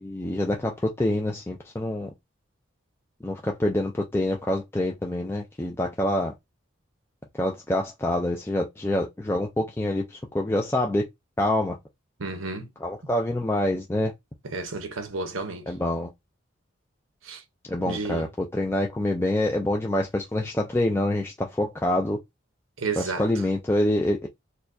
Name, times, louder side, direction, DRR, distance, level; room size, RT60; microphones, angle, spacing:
voice 1, 0.0-2.1 3.2-6.3 7.4-11.1 11.4-11.8 12.8-14.1 15.7-16.1 17.7-22.2 23.0-24.3, left 1 dB, 10° left, 0.4 m, -26 dB
voice 2, 12.2-12.7 14.4-15.7 17.2-17.4 17.8-18.3 22.8-23.3, right 3 dB, 85° right, 0.8 m, -32 dB
4.3 x 2.2 x 2.6 m
head